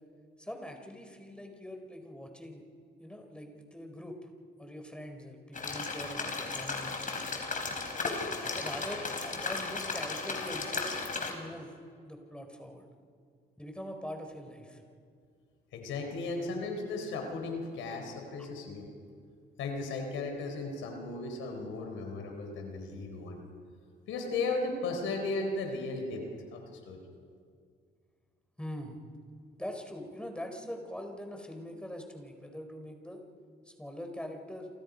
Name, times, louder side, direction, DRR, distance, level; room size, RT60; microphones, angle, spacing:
voice 1, 0.4-2.6 3.0-4.2 4.6-6.9 8.6-10.9 11.3-11.7 12.0-12.9 13.6-14.8 28.6-29.0 29.6-33.2 33.7-34.7, equal, 5° left, 4 dB, 4.5 m, -43 dB
sound 1, 5.5-11.3, left 4 dB, 40° left, 4.7 m, -35 dB
voice 2, 15.7-18.9 19.6-23.4 24.1-26.2 26.5-27.0, left 3 dB, 85° left, 3 dB, 4.5 m, -35 dB
29.0 x 27.0 x 5.4 m, 2.2 s
cardioid pair, 90°, 20 cm